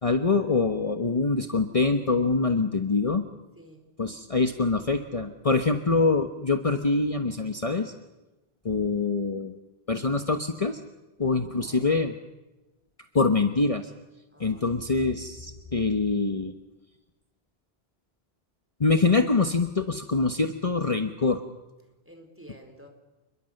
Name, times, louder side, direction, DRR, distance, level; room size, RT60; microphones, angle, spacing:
voice 1, 0.0-3.2 4.0-7.9 8.6-9.6 9.9-10.8 11.2-12.1 13.1-13.8 14.4-16.5 18.8-21.4, left 3 dB, 35° left, 6 dB, 1.3 m, -24 dB
voice 2, 11.5-11.9 14.3-14.6 14.9-15.1 22.0-22.9, equal, 10° right, 3 dB, 4.7 m, -50 dB
28.5 x 22.0 x 6.7 m, 1.0 s
omnidirectional pair, 1.1 m